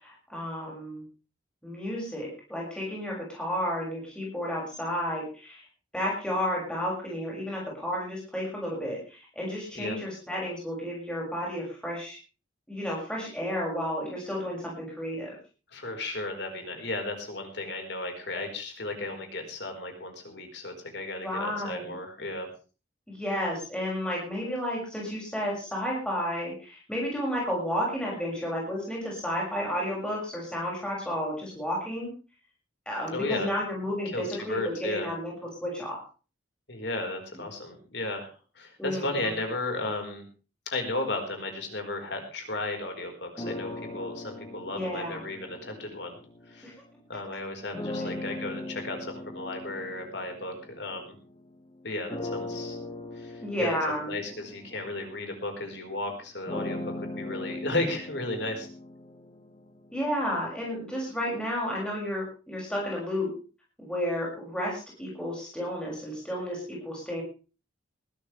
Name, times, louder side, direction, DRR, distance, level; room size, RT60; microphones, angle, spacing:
voice 1, 0.0-1.0 1.6-5.6 5.9-12.2 12.7-15.4 21.2-21.9 23.1-32.1 32.9-36.0 38.8-39.1 44.6-45.2 47.8-48.1 53.4-54.1 59.9-63.3 63.8-67.2, equal, 5° left, -3 dB, 6.5 m, -32 dB
voice 2, 15.7-22.5 33.1-33.5 34.1-35.1 36.7-38.3 38.6-40.2 40.7-46.2 46.5-46.7 47.1-51.1 51.8-52.8 53.2-58.7, left 2 dB, 60° left, 4 dB, 4.7 m, -34 dB
sound 1, 43.4-46.9 47.7-51.5 52.1-60.1, left 1 dB, 20° left, 1.6 m, -39 dB
20.5 x 13.5 x 3.4 m, 0.35 s
head